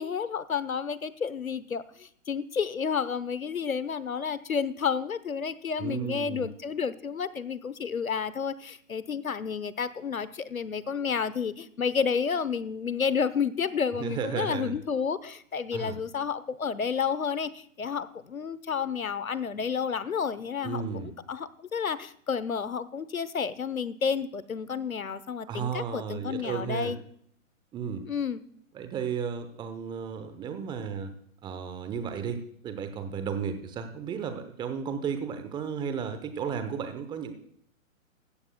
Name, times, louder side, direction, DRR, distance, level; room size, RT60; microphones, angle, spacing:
voice 1, 0.0-20.8 21.3-27.0 28.1-28.4, left 6 dB, 90° left, 16 dB, 1.0 m, -31 dB
voice 2, 5.8-6.5 14.0-14.8 15.7-16.0 20.6-21.1 25.5-26.9 27.7-28.0 28.7-31.1 31.4-37.3, right 6 dB, 10° right, 9 dB, 0.8 m, -34 dB
16.5 x 14.0 x 2.2 m, 0.63 s
figure-of-eight pair, 130°, 41 cm